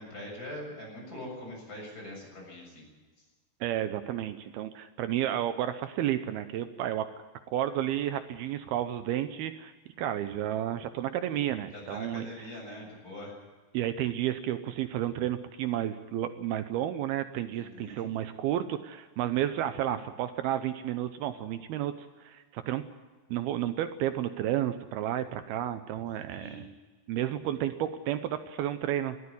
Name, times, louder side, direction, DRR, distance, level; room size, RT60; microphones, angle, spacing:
voice 1, 0.0-2.9 11.7-13.4 17.5-18.1 26.3-26.7, left 1 dB, 20° left, 0 dB, 7.5 m, -43 dB
voice 2, 3.6-7.1 7.5-9.7 10.0-12.5 13.7-22.8 23.3-26.6 27.1-29.2, right 11 dB, 75° right, 10 dB, 2.6 m, -31 dB
20.5 x 14.5 x 9.9 m, 1.3 s
omnidirectional pair, 4.8 m